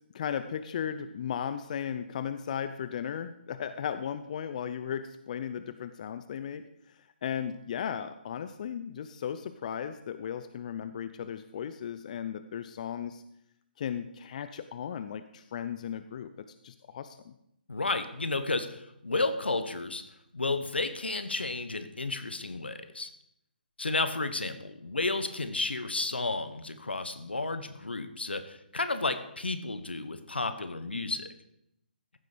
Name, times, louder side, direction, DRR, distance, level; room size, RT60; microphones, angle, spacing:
voice 1, 0.1-13.2 13.8-17.3, left 8 dB, 45° left, 11 dB, 0.6 m, -36 dB
voice 2, 17.7-20.0 20.3-23.1 23.8-31.3, left 3 dB, 85° left, 10 dB, 1.2 m, -32 dB
14.5 x 7.6 x 5.1 m, 0.78 s
figure-of-eight pair, 140°, 6 cm